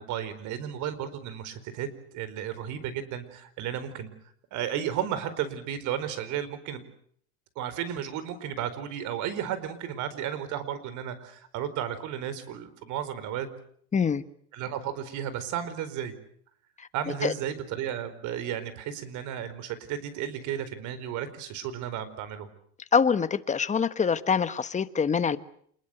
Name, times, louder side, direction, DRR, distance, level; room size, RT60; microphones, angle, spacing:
voice 1, 0.0-1.9 2.1-4.1 4.5-6.8 7.6-13.5 14.5-16.1 16.9-22.5, right 10 dB, 55° right, 4.6 m, -33 dB
voice 2, 13.9-14.2 16.8-16.9 17.2-17.3 22.9-25.4, left 6 dB, 20° left, 1.4 m, -25 dB
28.0 x 21.5 x 7.9 m
supercardioid pair, 120°, 35 cm